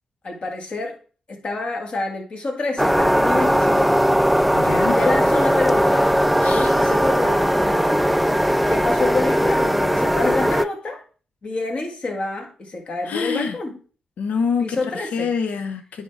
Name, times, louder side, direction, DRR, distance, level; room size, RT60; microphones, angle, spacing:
voice 1, 0.2-1.0 1.3-4.1 4.9-6.1 6.5-8.2 8.7-11.0 11.4-13.8 14.6-15.3, left 3 dB, 50° left, 1 dB, 1.7 m, -27 dB
sound 1, 2.8-10.7, equal, ahead, 0.3 m, -18 dB
voice 2, 4.5-5.0 6.4-6.8 13.0-13.6 14.2-16.0, left 6 dB, 80° left, 8 dB, 0.7 m, -26 dB
9.5 x 3.7 x 3.2 m, 0.39 s
cardioid pair, 75°, 2 cm